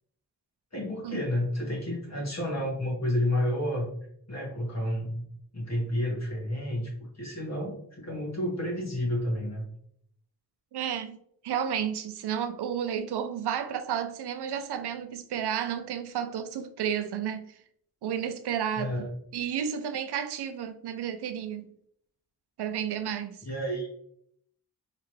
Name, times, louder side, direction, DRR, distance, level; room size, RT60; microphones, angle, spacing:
voice 1, 0.7-3.9 4.3-5.3 5.5-9.7 18.8-19.1 23.5-23.9, left 1 dB, 40° left, 1.6 m, -30 dB
voice 2, 10.7-11.2 11.4-17.5 18.0-19.0 19.3-21.7 22.6-23.4, right 8 dB, 80° right, 0.6 m, -32 dB
3.8 x 3.3 x 3.1 m
cardioid pair, 55°, 39 cm